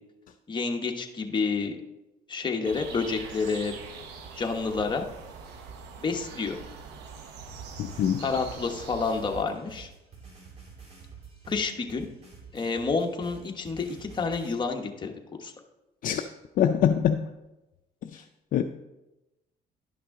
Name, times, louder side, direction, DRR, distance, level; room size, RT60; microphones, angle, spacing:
voice 1, 0.5-1.8 2.3-3.7 4.4-5.0 6.0-6.6 8.2-9.9 11.5-12.1 12.5-15.1 15.4-15.5, left 4 dB, 25° left, 3 dB, 1.1 m, -29 dB
sound 1, 2.6-9.5, right 5 dB, 85° right, 1.1 m, -43 dB
sound 2, 7.5-14.5, right 5 dB, 40° right, 2.3 m, -49 dB
voice 2, 7.8-8.2 16.0-16.3 16.6-17.3 18.0-18.2 18.5-18.6, left 9 dB, 55° left, 6 dB, 0.5 m, -24 dB
11.0 x 5.9 x 3.7 m, 0.98 s
cardioid pair, 110°, 17 cm